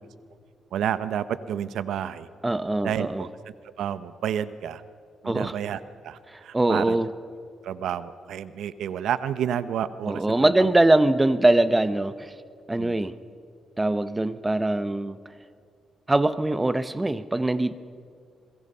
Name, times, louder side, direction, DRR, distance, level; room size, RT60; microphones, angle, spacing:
voice 1, 0.7-2.3 2.8-3.3 3.8-4.8 5.2-7.0 7.6-10.7 12.8-13.0, right 9 dB, 80° right, 14 dB, 0.7 m, -30 dB
voice 2, 2.4-3.3 5.2-5.5 6.3-7.1 10.1-12.3 12.7-13.1 13.8-15.2 16.1-17.7, right 2 dB, 15° right, 13 dB, 0.8 m, -22 dB
28.0 x 22.0 x 5.6 m, 2.2 s
cardioid pair, 130°, 0 cm